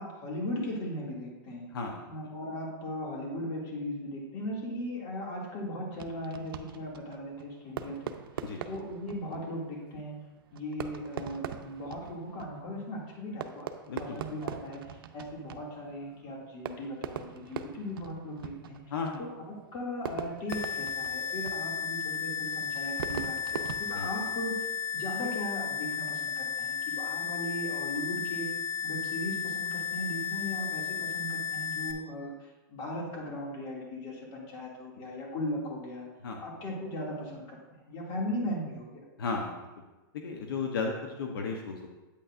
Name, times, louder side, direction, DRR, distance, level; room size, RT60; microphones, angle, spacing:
voice 1, 0.0-1.7 2.1-8.2 8.7-10.2 10.5-13.7 14.0-18.8 19.2-24.7 24.9-28.5 28.8-36.1 36.4-39.0, left 1 dB, 40° left, -2 dB, 2.3 m, -38 dB
voice 2, 1.7-2.1 8.4-8.6 10.8-10.9 13.9-14.2 18.9-19.3 23.9-24.1 36.2-36.4 39.2-39.7 40.1-41.9, left 4 dB, 85° left, 2 dB, 0.9 m, -34 dB
Fireworks, 5.9-24.7, right 8 dB, 85° right, 0.6 m, -43 dB
sound 1, 20.5-31.9, left 8 dB, 20° left, 0.6 m, -34 dB
8.6 x 8.4 x 2.5 m, 1.1 s
supercardioid pair, 145°, 12 cm